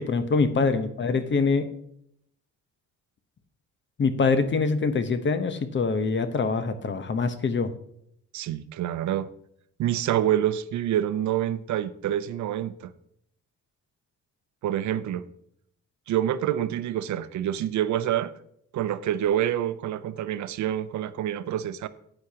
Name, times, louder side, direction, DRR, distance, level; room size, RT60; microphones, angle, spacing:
voice 1, 0.0-1.7 4.0-7.7, left 4 dB, 40° left, 1.0 m, -24 dB
voice 2, 8.3-9.3 9.8-12.9 14.6-15.2 16.1-18.3 18.7-21.9, right 11 dB, 70° right, 0.6 m, -27 dB
12.5 x 8.7 x 2.9 m
cardioid pair, 90°, 30 cm